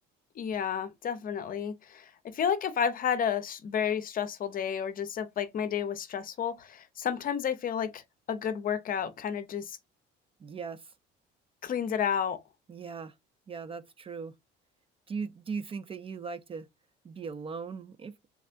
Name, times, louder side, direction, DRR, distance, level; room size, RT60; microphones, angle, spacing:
voice 1, 0.4-8.0 8.3-9.8 11.6-12.4, left 8 dB, 40° left, 0.6 m, -31 dB
voice 2, 10.4-10.9 12.7-13.1 13.5-14.3 15.1-16.7 17.0-18.2, right 5 dB, 25° right, 0.4 m, -38 dB
3.6 x 3.3 x 2.5 m
cardioid pair, 110°, 21 cm